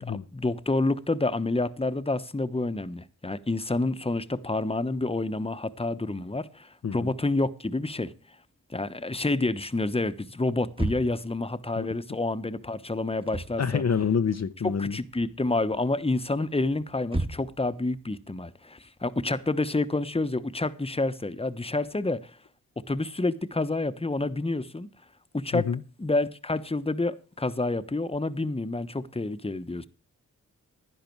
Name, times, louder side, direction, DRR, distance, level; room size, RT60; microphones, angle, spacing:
voice 1, 0.1-8.1 8.7-13.8 14.6-22.3 22.9-24.9 25.3-25.7 26.0-29.9, left 2 dB, 15° left, 1.1 m, -28 dB
sound 1, 10.7-11.3 13.1-13.6 13.9-14.9 15.1-15.6 16.2-17.7, right 1 dB, 15° right, 1.4 m, -33 dB
voice 2, 13.6-15.0 25.5-25.8, left 6 dB, 45° left, 0.8 m, -27 dB
11.5 x 10.5 x 4.6 m
cardioid pair, 40°, 35 cm